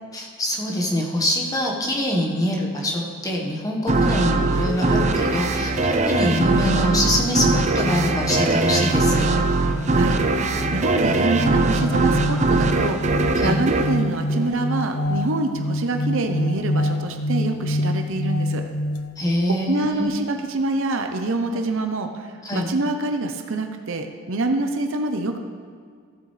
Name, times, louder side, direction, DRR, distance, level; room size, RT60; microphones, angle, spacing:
voice 1, 0.1-9.3 13.3-13.6 19.2-20.1 22.4-22.7, left 1 dB, 15° left, -1 dB, 1.3 m, -24 dB
sound 1, 3.9-15.1, right 2 dB, 30° right, 0.5 m, -21 dB
sound 2, 4.4-19.2, left 1 dB, 75° left, 0.6 m, -28 dB
voice 2, 10.7-18.6 19.7-25.4, right 2 dB, 60° right, 5 dB, 0.8 m, -26 dB
15.5 x 7.7 x 3.3 m, 2.1 s
head